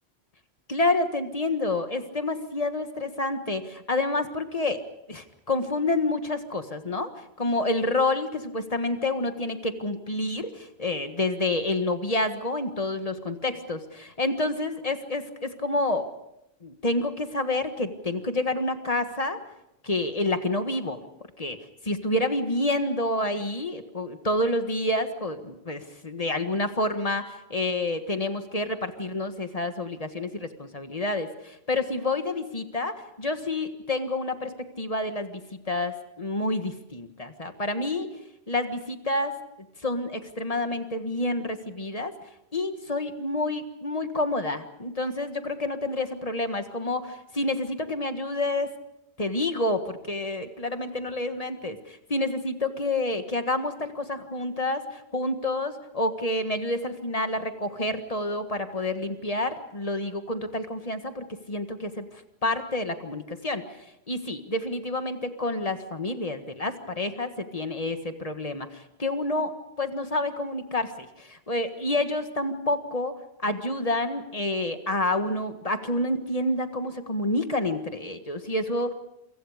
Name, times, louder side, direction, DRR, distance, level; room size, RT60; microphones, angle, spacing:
voice 1, 0.7-4.8 5.1-7.1 7.4-16.1 16.6-19.4 19.8-21.0 21.4-21.6 21.8-38.2 38.5-39.4 39.8-42.1 42.5-48.7 49.2-62.1 62.4-63.6 64.1-73.1 73.4-78.9, left 2 dB, 35° left, 7 dB, 1.7 m, -28 dB
28.0 x 24.5 x 5.1 m, 0.85 s
omnidirectional pair, 1.1 m